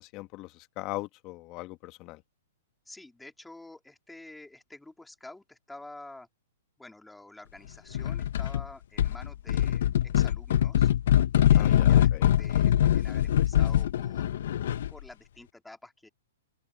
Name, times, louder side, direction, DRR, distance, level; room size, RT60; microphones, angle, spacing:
voice 1, 0.0-2.2 11.6-12.3, left 19 dB, 30° left, 1.1 m, -40 dB
voice 2, 2.9-6.3 6.8-10.9 11.5-14.4 14.9-16.1, left 2 dB, 5° left, 2.6 m, -49 dB
sound 1, 7.9-8.6 9.0-15.0, left 11 dB, 65° left, 0.5 m, -23 dB
open air
hypercardioid pair, 155°, 0 cm